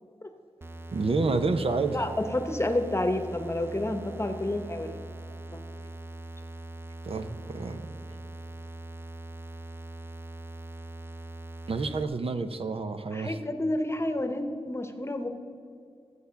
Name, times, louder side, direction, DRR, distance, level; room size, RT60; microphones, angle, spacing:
sound 1, 0.6-12.0, right 2 dB, 20° right, 0.5 m, -42 dB
voice 1, 0.9-2.0 7.0-7.9 11.7-13.4, right 3 dB, 60° right, 9 dB, 0.7 m, -29 dB
voice 2, 1.9-5.0 5.5-5.6 13.1-15.3, left 1 dB, 25° left, 7 dB, 1.0 m, -30 dB
14.0 x 8.3 x 5.8 m, 2.5 s
wide cardioid pair, 95°, 11 cm